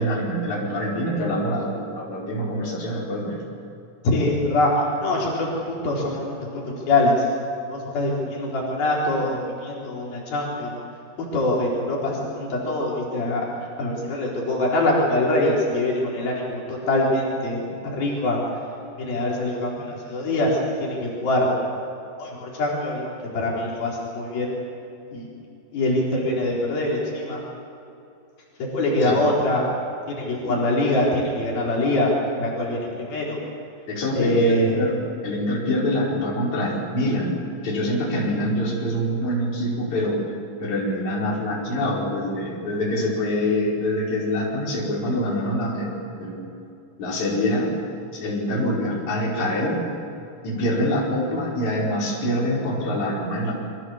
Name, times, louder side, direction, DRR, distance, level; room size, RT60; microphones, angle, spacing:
voice 1, 0.0-3.4 29.0-29.2 30.4-30.6 33.9-37.4 37.6-40.2 40.6-46.5 47.0-47.7 48.1-49.8 50.4-53.5, equal, 50° left, -4 dB, 6.5 m, -25 dB
voice 2, 4.0-7.3 7.7-10.8 11.2-18.4 19.0-21.6 22.2-24.6 25.1-25.3 25.7-27.4 28.7-29.7 30.1-33.4 34.2-34.8, left 1 dB, 80° left, -4 dB, 6.3 m, -24 dB
29.0 x 24.0 x 7.5 m, 2.6 s
omnidirectional pair, 4.2 m